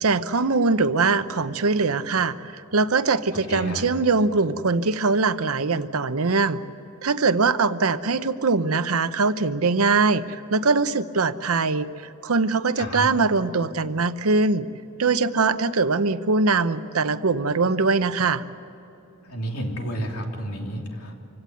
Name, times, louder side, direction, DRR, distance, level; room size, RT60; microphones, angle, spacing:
voice 1, 0.0-2.4 2.7-6.6 7.0-14.7 15.0-18.4, right 4 dB, 85° right, 12 dB, 0.8 m, -22 dB
voice 2, 3.5-3.9 12.8-13.1 19.2-21.1, equal, 90° left, 1 dB, 3.2 m, -31 dB
25.5 x 17.0 x 9.2 m, 3.0 s
head